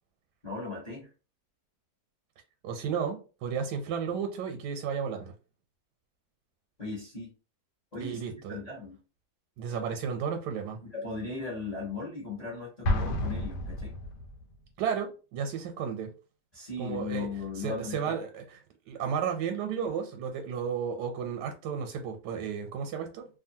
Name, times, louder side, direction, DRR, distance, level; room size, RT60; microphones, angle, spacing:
voice 1, 0.4-1.1 6.8-7.3 7.9-9.0 10.8-14.0 16.5-18.1, left 4 dB, 30° left, 0.9 m, -37 dB
voice 2, 2.6-5.3 8.0-8.6 9.6-10.8 14.8-16.1 16.8-17.3 17.6-18.4 18.9-23.3, right 7 dB, 85° right, 1.2 m, -33 dB
Explosion, 12.8-14.5, left 1 dB, 90° left, 1.2 m, -30 dB
2.7 x 2.5 x 2.7 m
omnidirectional pair, 1.8 m